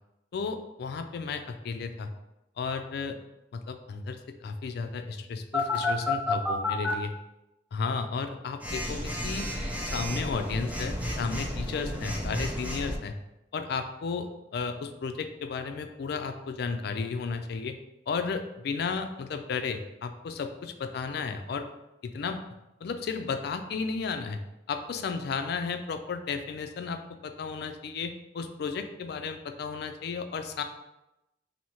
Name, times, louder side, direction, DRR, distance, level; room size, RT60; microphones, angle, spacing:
voice 1, 0.3-2.1 2.6-3.2 3.5-7.1 7.7-9.5 9.9-13.1 13.5-17.8 18.1-21.7 22.0-22.4 22.8-24.4 24.7-30.6, left 5 dB, 65° left, 7 dB, 0.3 m, -33 dB
Telephone, 5.5-6.9 8.6-13.0, left 2 dB, 10° right, 0.6 m, -31 dB
2.9 x 2.7 x 4.4 m, 0.93 s
head